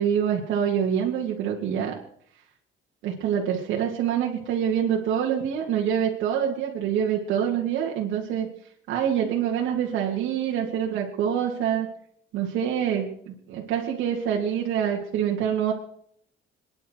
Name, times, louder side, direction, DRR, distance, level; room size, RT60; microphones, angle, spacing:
voice 1, 0.0-2.0 3.0-8.5 8.9-11.9 12.3-15.7, right 8 dB, 75° right, -2 dB, 2.7 m, -26 dB
27.5 x 10.5 x 4.7 m, 0.64 s
cardioid pair, 160°, 20 cm